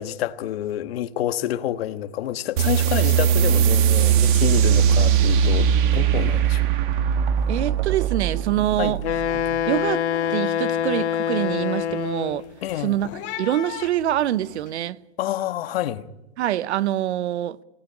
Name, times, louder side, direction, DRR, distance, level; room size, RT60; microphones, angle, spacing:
voice 1, 0.0-6.6 8.8-9.0 12.6-13.0 15.2-16.1, left 12 dB, 60° left, 1.4 m, -28 dB
sound 1, 2.6-9.7, right 8 dB, 45° right, 1.7 m, -20 dB
sound 2, 7.4-7.6 7.9-8.3 8.7-14.7, left 11 dB, 35° left, 2.7 m, -41 dB
voice 2, 7.5-9.0 9.7-12.4 12.8-13.1 13.4-15.0 16.4-17.6, right 12 dB, 80° right, 0.9 m, -25 dB
Wind instrument woodwind instrument, 9.0-12.5, left 9 dB, 90° left, 1.2 m, -25 dB
21.0 x 18.0 x 9.9 m
supercardioid pair, 160°, 33 cm